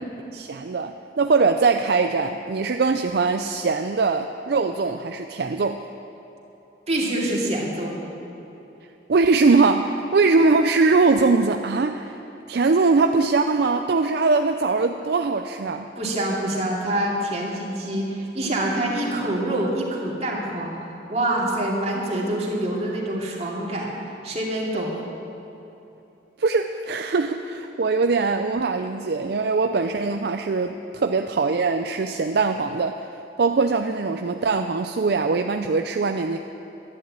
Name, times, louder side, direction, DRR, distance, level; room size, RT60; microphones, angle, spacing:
voice 1, 0.3-5.8 9.1-12.2 12.5-15.9 26.4-33.1 33.4-36.4, right 4 dB, 60° right, 6 dB, 0.5 m, -21 dB
voice 2, 6.9-7.9 16.0-23.9 24.2-24.9, right 1 dB, 35° right, -3 dB, 2.5 m, -26 dB
12.0 x 10.5 x 8.7 m, 3.0 s
head